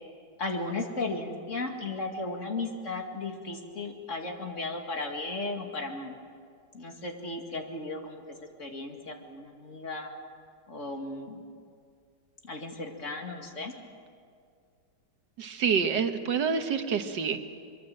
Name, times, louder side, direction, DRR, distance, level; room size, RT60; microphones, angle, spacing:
voice 1, 0.4-6.1 6.7-8.2 8.6-10.1 10.7-11.4 12.5-13.7, left 3 dB, 45° left, 3 dB, 2.4 m, -35 dB
voice 2, 15.4-17.4, right 6 dB, 80° right, 7 dB, 1.9 m, -27 dB
23.5 x 23.0 x 7.7 m, 2.2 s
omnidirectional pair, 1.8 m